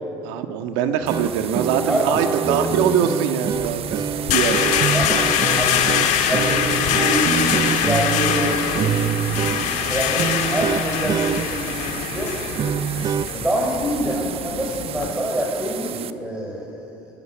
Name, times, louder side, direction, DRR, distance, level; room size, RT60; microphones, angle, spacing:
voice 1, 0.2-4.8, right 8 dB, 85° right, 7 dB, 1.6 m, -23 dB
sound 1, 1.0-13.3, right 8 dB, 35° right, 0.4 m, -26 dB
sound 2, 1.1-16.1, right 10 dB, 50° right, 0.9 m, -34 dB
voice 2, 1.9-2.7 4.9-5.2 5.6-5.8 6.3-9.0 9.7-12.3 13.3-17.1, equal, 10° right, -3 dB, 5.1 m, -26 dB
sound 3, 3.5-15.1, left 10 dB, 65° left, 2.0 m, -23 dB
20.0 x 18.0 x 9.1 m, 2.7 s
supercardioid pair, 100°, 13 cm